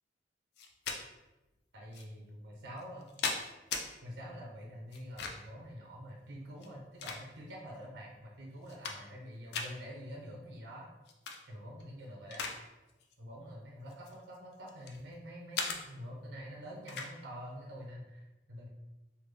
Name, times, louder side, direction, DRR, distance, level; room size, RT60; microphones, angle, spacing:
sound 1, 0.6-1.0 1.9-2.0 2.8-3.9 4.9-5.6 6.5-7.6 8.1-8.2 8.6-9.2 9.5-9.7 11.1-11.4 11.8-12.6 12.9-13.1 13.9-15.0 15.5-15.8 16.9-17.1, left 5 dB, 65° left, 0.4 m, -38 dB
voice 1, 1.7-3.1 4.0-10.9 11.5-12.4 13.2-18.7, equal, 85° right, -2 dB, 0.7 m, -46 dB
3.4 x 2.2 x 3.2 m, 1.0 s
head